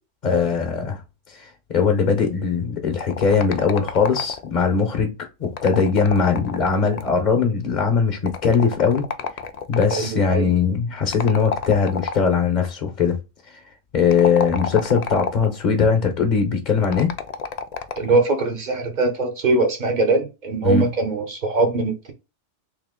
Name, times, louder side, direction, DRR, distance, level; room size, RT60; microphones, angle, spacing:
voice 1, 0.2-1.0 1.3-5.1 5.4-9.1 9.7-13.2 13.9-17.1 20.6-20.8, left 5 dB, 45° left, 0.8 m, -20 dB
sound 1, 3.0-4.6 5.4-7.3 8.3-10.1 11.1-12.4 14.0-15.6 16.8-18.2, left 6 dB, 70° left, 0.4 m, -30 dB
voice 2, 9.9-10.5 18.0-22.1, right 3 dB, 40° right, 1.0 m, -21 dB
3.6 x 2.9 x 3.6 m
omnidirectional pair, 1.3 m